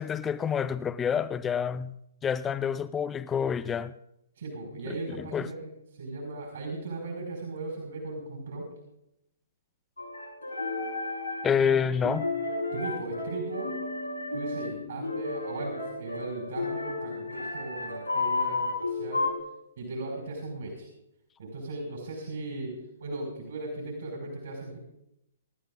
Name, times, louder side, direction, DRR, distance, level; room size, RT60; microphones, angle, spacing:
voice 1, 0.0-1.9 2.2-3.9 5.3-5.5 11.4-12.3, left 7 dB, 15° left, 0.5 m, -27 dB
voice 2, 4.4-8.7 12.7-13.7 14.3-19.3 19.8-20.9 21.4-22.7 23.0-24.8, right 2 dB, 60° right, 5.1 m, -37 dB
sound 1, 10.0-19.4, left 3 dB, 85° left, 6.7 m, -33 dB
28.0 x 13.0 x 2.5 m
figure-of-eight pair, 125°, 0 cm